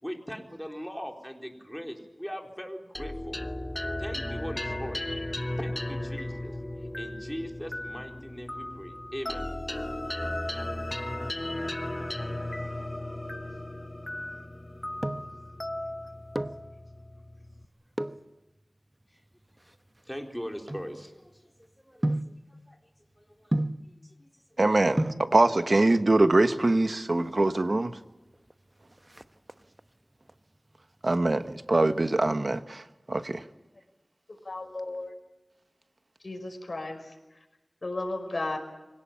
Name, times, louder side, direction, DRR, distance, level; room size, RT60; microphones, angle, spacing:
voice 1, 0.0-3.4 4.0-5.0 5.6-6.6 7.0-9.5 19.1-19.2 20.1-21.5 21.8-22.8 23.2-23.5 23.8-24.3, equal, 5° left, 2 dB, 4.1 m, -40 dB
sound 1, 2.9-17.6, left 1 dB, 30° left, 1.1 m, -35 dB
sound 2, 14.6-15.4 16.1-16.7 17.9-18.3 19.0-21.4 22.0-22.4 23.5-23.9 24.7-24.8 25.0-25.3 26.4-27.0 27.3-27.4 27.6-27.7 28.1-28.5 28.8-29.9 30.3-30.7 31.1-32.2 32.5-32.6, right 1 dB, 25° right, 1.0 m, -32 dB
voice 2, 24.6-28.0 31.0-33.4, right 2 dB, 60° right, 10 dB, 1.3 m, -23 dB
voice 3, 34.4-35.1 36.2-37.2 37.8-38.6, left 2 dB, 65° left, 3 dB, 5.2 m, -34 dB
25.5 x 17.5 x 8.8 m, 1.0 s
wide cardioid pair, 45°, 0 cm